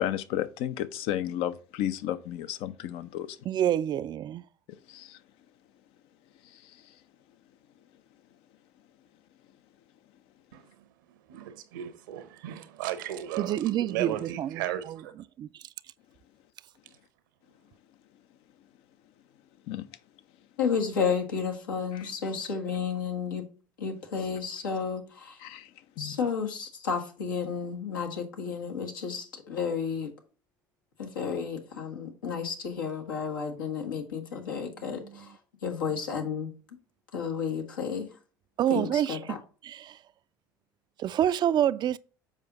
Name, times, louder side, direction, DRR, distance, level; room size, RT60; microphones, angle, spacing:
voice 1, 0.0-3.4 4.9-5.2 19.7-19.9 25.4-25.7 26.0-26.1, left 12 dB, 65° left, 0.6 m, -32 dB
voice 2, 3.4-4.4 13.4-15.0 15.4-15.6 34.8-35.3 38.6-39.2 39.6-40.0 41.0-42.0, right 11 dB, 45° right, 0.4 m, -28 dB
voice 3, 10.5-10.9 11.3-15.1, right 12 dB, 80° right, 1.0 m, -36 dB
voice 4, 20.6-23.5 23.8-25.4 26.0-30.1 31.0-36.5 37.1-38.1 38.7-39.4, left 6 dB, 90° left, 1.5 m, -32 dB
7.4 x 4.9 x 3.9 m
hypercardioid pair, 70°, 10 cm